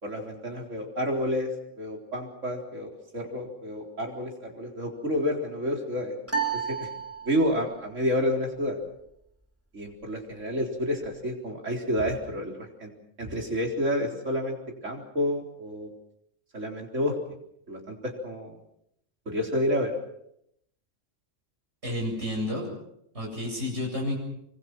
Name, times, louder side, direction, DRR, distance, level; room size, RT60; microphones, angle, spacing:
voice 1, 0.0-1.5 1.8-6.1 6.5-6.9 7.2-8.8 9.7-12.9 13.2-14.6 14.8-15.9 16.5-17.2 17.7-18.6 19.3-19.9, equal, 75° right, 2 dB, 4.4 m, -29 dB
sound 1, 6.3-7.8, right 6 dB, 10° right, 3.3 m, -31 dB
voice 2, 21.8-22.7 23.1-24.2, left 1 dB, 60° right, -2 dB, 8.4 m, -30 dB
25.0 x 24.5 x 6.1 m, 0.77 s
omnidirectional pair, 1.3 m